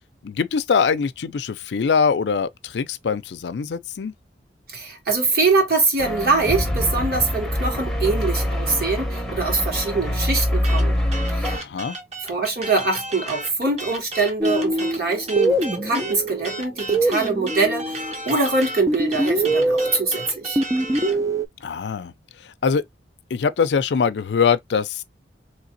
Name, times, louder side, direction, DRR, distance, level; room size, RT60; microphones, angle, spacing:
voice 1, 0.2-4.1 11.5-12.0 21.6-22.1 22.4-22.8 23.3-25.0, left 6 dB, 75° left, 0.4 m, -23 dB
voice 2, 4.7-11.0 11.3-11.6 12.3-20.6, right 3 dB, 60° right, 2.0 m, -23 dB
sound 1, 6.0-11.6, left 1 dB, ahead, 0.8 m, -24 dB
sound 2, 10.6-21.2, right 2 dB, 40° right, 1.1 m, -34 dB
sound 3, 14.4-18.1 18.9-21.5, right 1 dB, 20° right, 0.4 m, -23 dB
3.9 x 3.2 x 2.6 m
head